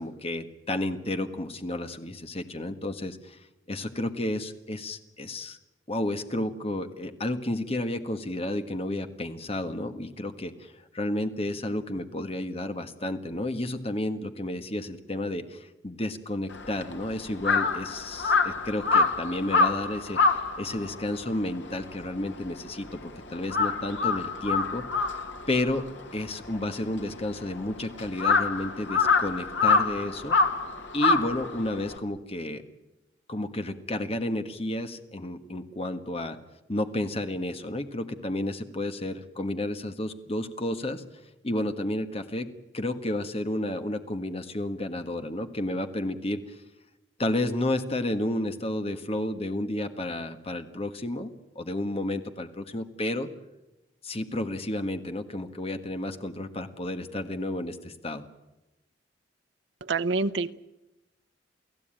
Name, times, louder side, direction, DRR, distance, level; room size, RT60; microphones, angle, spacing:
voice 1, 0.0-3.4 3.7-5.6 5.9-20.2 20.6-24.8 25.5-25.8 26.1-30.4 30.9-32.6 33.3-36.4 36.7-41.0 41.4-42.5 42.7-46.4 47.2-53.3 54.0-58.2, left 1 dB, 35° left, 8 dB, 1.6 m, -31 dB
Crow, 16.5-23.0 23.3-32.0, left 4 dB, 80° left, 2.3 m, -26 dB
voice 2, 59.8-60.5, right 3 dB, 75° right, 8 dB, 0.8 m, -27 dB
29.5 x 16.5 x 9.0 m, 1.0 s
head